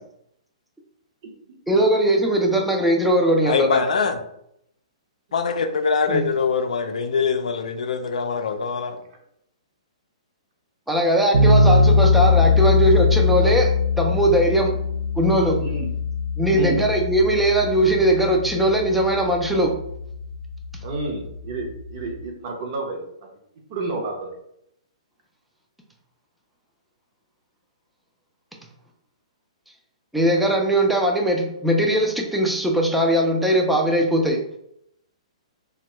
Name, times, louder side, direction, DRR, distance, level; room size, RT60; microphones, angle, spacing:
voice 1, 1.7-3.8 6.1-6.2 10.9-14.8 15.2-15.6 16.4-19.7 30.1-34.4, right 1 dB, ahead, 0 dB, 0.3 m, -20 dB
voice 2, 3.4-4.2 5.3-9.0, left 5 dB, 85° left, 8 dB, 0.4 m, -23 dB
sound 1, 11.3-22.2, left 4 dB, 85° right, 0.4 m, -21 dB
voice 3, 15.6-15.9 16.5-16.9 20.8-23.3 23.7-24.3, right 2 dB, 40° right, 2 dB, 0.7 m, -30 dB
3.0 x 2.2 x 2.9 m, 0.75 s
hypercardioid pair, 160°, 4 cm